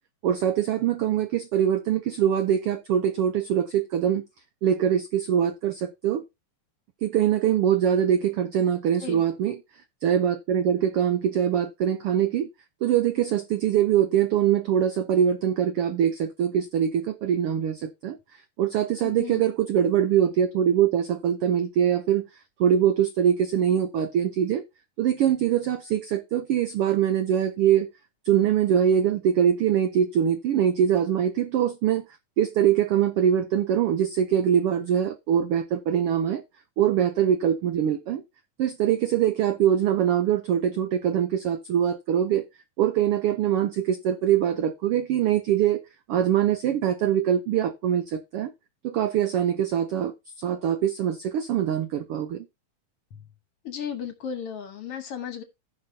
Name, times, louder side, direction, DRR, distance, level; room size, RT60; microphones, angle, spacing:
voice 1, 0.2-4.2 4.6-6.2 7.0-9.6 10.0-12.5 12.8-22.2 22.6-24.6 25.0-27.9 28.2-32.0 32.4-36.4 36.8-38.2 38.6-42.4 42.8-45.8 46.1-48.5 48.8-52.5, right 9 dB, 85° right, 1.2 m, -23 dB
voice 2, 8.8-9.2 19.0-19.4 53.1-53.2 53.6-55.4, left 7 dB, 60° left, 1.8 m, -35 dB
16.0 x 5.7 x 2.7 m
omnidirectional pair, 3.5 m